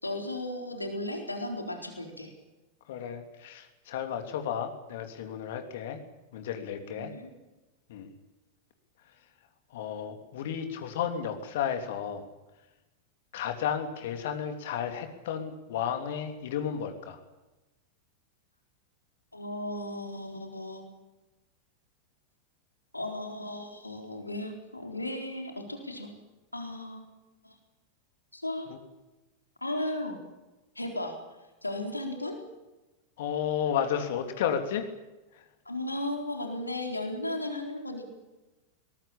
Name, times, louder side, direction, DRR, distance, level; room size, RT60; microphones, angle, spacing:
voice 1, 0.0-2.3 6.9-7.3 19.3-20.8 22.9-26.1 26.5-27.1 27.4-27.5 28.3-28.7 29.6-30.2 30.8-31.2 31.6-32.4 35.7-38.1, left 1 dB, 85° left, 4 dB, 4.0 m, -35 dB
voice 2, 2.9-6.0 6.3-7.1 7.9-8.1 9.7-12.2 13.3-17.2 28.7-28.8 33.2-34.9 35.3-35.4, left 8 dB, 55° left, 6 dB, 3.0 m, -33 dB
22.5 x 20.0 x 8.7 m, 1.1 s
figure-of-eight pair, 90°, 0 cm